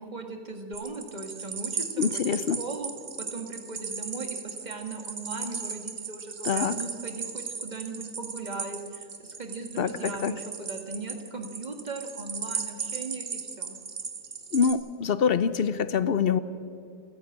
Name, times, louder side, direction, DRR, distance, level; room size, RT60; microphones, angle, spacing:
voice 1, 0.0-2.9 3.2-13.8, right 3 dB, 25° right, 4 dB, 1.9 m, -38 dB
sound 1, 0.7-14.7, right 5 dB, 45° right, 1.5 m, -36 dB
voice 2, 2.0-2.6 6.4-6.8 9.8-10.3 14.5-16.4, left 7 dB, 60° left, 14 dB, 0.6 m, -25 dB
28.0 x 10.5 x 8.7 m, 2.5 s
omnidirectional pair, 1.7 m